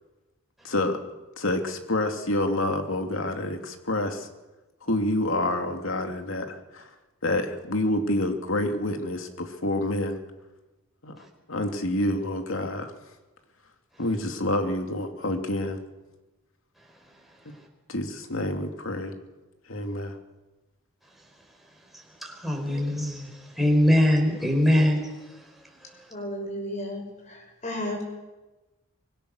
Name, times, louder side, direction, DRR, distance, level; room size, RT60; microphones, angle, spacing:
voice 1, 0.6-1.0 1.4-4.3 4.8-6.9 7.2-10.2 11.0-11.2 11.5-12.9 14.0-15.8 17.9-19.1 19.7-20.2, left 1 dB, 75° left, 2.6 m, -28 dB
voice 2, 22.2-25.0 25.9-26.0, left 1 dB, ahead, 4.7 m, -22 dB
voice 3, 26.1-28.0, left 1 dB, 35° left, 6.1 m, -33 dB
25.0 x 22.0 x 6.6 m
head